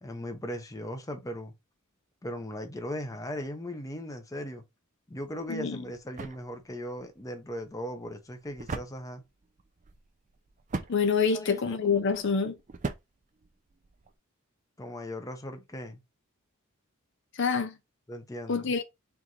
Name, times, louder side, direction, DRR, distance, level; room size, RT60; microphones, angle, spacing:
voice 1, 0.0-1.5 2.2-4.6 5.1-9.2 11.3-12.2 14.8-16.0 18.1-18.7, equal, 15° left, 0.7 m, -38 dB
sound 1, 5.3-14.2, right 3 dB, 35° right, 0.5 m, -42 dB
voice 2, 5.5-5.8 10.9-12.6 17.3-17.8 18.5-18.8, left 5 dB, 60° left, 0.6 m, -26 dB
4.7 x 2.5 x 3.9 m
head